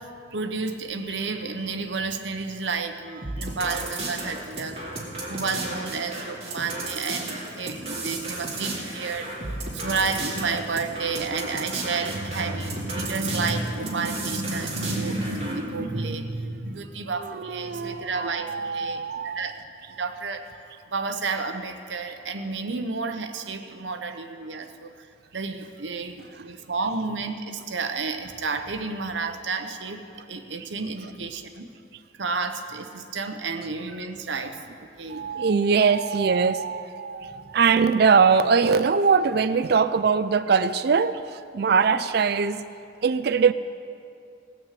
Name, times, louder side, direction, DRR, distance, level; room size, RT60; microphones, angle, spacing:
voice 1, 0.0-5.0 5.3-19.6 20.0-20.4 20.9-24.9 25.3-30.0 30.3-31.7 32.2-34.7 35.0-35.3, right 4 dB, 80° right, 6 dB, 0.9 m, -31 dB
sound 1, 3.2-15.6, right 2 dB, 35° right, 2.5 m, -34 dB
voice 2, 17.2-19.5 35.1-42.6 43.0-43.5, right 5 dB, 55° right, 13 dB, 0.4 m, -22 dB
18.5 x 6.1 x 7.5 m, 2.4 s
head